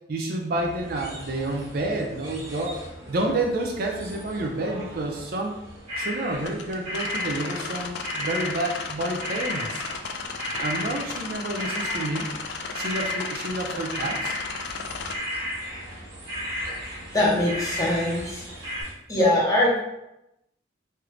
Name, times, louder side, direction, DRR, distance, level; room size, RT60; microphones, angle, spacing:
voice 1, 0.1-2.8 3.1-5.6 6.0-9.9 10.5-12.3 12.7-14.3, right 2 dB, 50° right, 1 dB, 0.4 m, -29 dB
sound 1, 0.5-18.9, right 1 dB, 85° right, 1.1 m, -44 dB
sound 2, 5.9-6.6 6.8-8.9 9.2-18.4 18.6-18.8, left 1 dB, 35° right, 1.3 m, -33 dB
sound 3, 6.4-15.2, left 5 dB, 60° left, 0.3 m, -34 dB
voice 2, 17.1-18.4 19.1-19.8, left 1 dB, 20° left, -4 dB, 0.8 m, -22 dB
3.2 x 2.5 x 3.1 m, 0.86 s
head